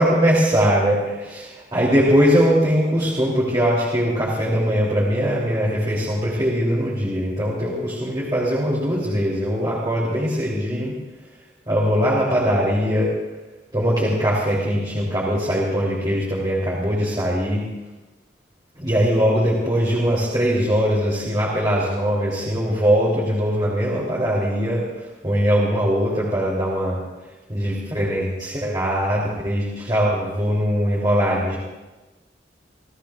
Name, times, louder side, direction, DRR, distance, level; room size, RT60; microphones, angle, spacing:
voice 1, 0.0-10.9 11.7-13.1 13.7-17.6 18.8-24.8 25.2-27.0 27.5-31.6, equal, 25° right, -6 dB, 3.4 m, -21 dB
29.5 x 16.5 x 2.5 m, 1.2 s
head